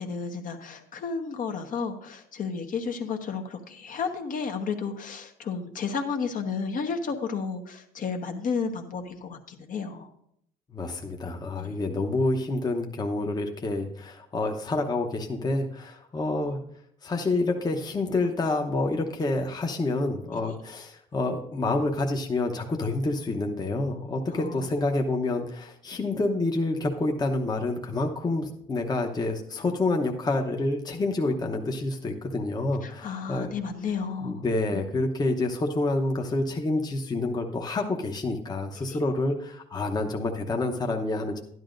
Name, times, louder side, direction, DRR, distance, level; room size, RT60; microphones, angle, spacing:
voice 1, 0.0-10.1 11.6-11.8 20.3-20.6 24.3-24.7 25.9-26.0 32.8-34.4 34.7-34.8 38.8-39.0, left 5 dB, 50° left, 5 dB, 1.1 m, -32 dB
voice 2, 10.7-16.6 17.0-33.5 34.2-41.4, left 2 dB, 25° left, 2 dB, 0.9 m, -28 dB
12.0 x 11.0 x 2.6 m, 0.71 s
cardioid pair, 110°, 17 cm